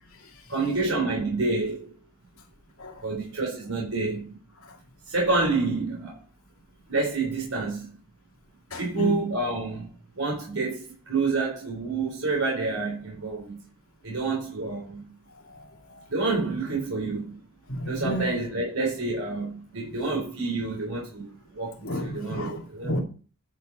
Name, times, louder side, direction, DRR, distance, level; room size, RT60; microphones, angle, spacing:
voice 1, 0.5-1.9 3.0-4.3 5.1-6.2 6.9-7.9 8.8-9.9 10.2-13.6 14.0-15.0 16.1-17.4 17.8-23.0, right 3 dB, 85° right, 3.8 m, -28 dB
voice 2, 8.7-9.2 15.5-16.0 17.7-18.3 21.8-23.0, equal, 85° left, 2.5 m, -32 dB
10.5 x 6.6 x 4.0 m
head